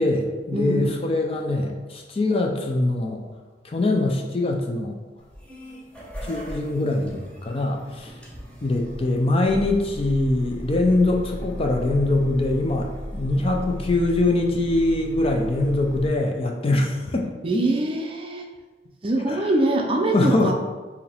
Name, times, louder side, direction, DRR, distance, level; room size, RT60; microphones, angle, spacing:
voice 1, 0.0-3.2 3.6-5.0 6.2-8.1 8.6-17.3 19.3-19.4 20.1-20.5, left 2 dB, 35° left, 2 dB, 0.4 m, -23 dB
voice 2, 0.5-0.9 17.4-18.4 19.0-20.5, right 1 dB, 30° right, 1 dB, 0.5 m, -23 dB
sound 1, 5.2-16.1, equal, 5° left, 0.8 m, -36 dB
4.7 x 2.8 x 3.4 m, 1.3 s
head